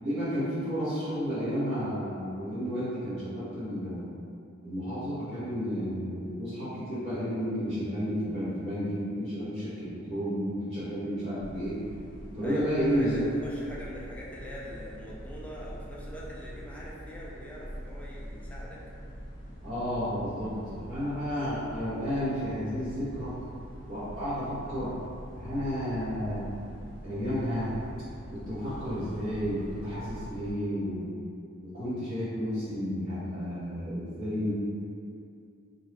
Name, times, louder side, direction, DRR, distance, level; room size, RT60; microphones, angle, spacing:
voice 1, 0.0-4.0 4.6-11.8 12.3-13.3 19.6-23.3 23.9-25.0 25.4-26.5 27.0-27.7 28.3-31.1 31.6-34.5, equal, 45° right, -17 dB, 1.1 m, -32 dB
sound 1, 11.4-30.5, equal, 25° left, 1.0 m, -44 dB
voice 2, 12.4-18.8, equal, 5° left, -6 dB, 0.4 m, -43 dB
2.6 x 2.3 x 3.2 m, 2.5 s
head